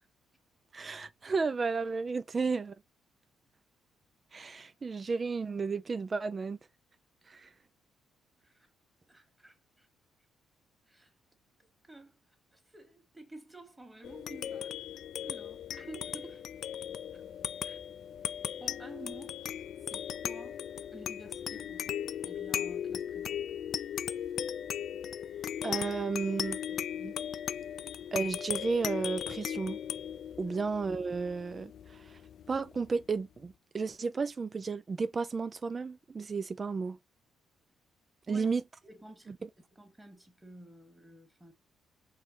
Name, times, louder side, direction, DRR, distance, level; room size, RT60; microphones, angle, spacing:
voice 1, 0.7-2.7 4.3-6.6 7.3-7.5 25.6-27.1 28.1-29.8 30.4-32.2 32.5-37.0 38.3-38.6, right 4 dB, 35° right, 0.3 m, -33 dB
voice 2, 9.1-9.9 10.9-11.1 11.6-12.2 12.5-14.7 15.2-16.4 17.1-17.2 17.6-17.8 18.6-20.6 20.9-23.4 30.4-30.6 38.3-38.5 38.8-39.3 39.7-41.5, right 2 dB, 10° right, 1.8 m, -51 dB
sound 1, 14.0-32.9, left 9 dB, 65° left, 0.3 m, -38 dB
4.5 x 3.0 x 3.2 m
cardioid pair, 90°, 0 cm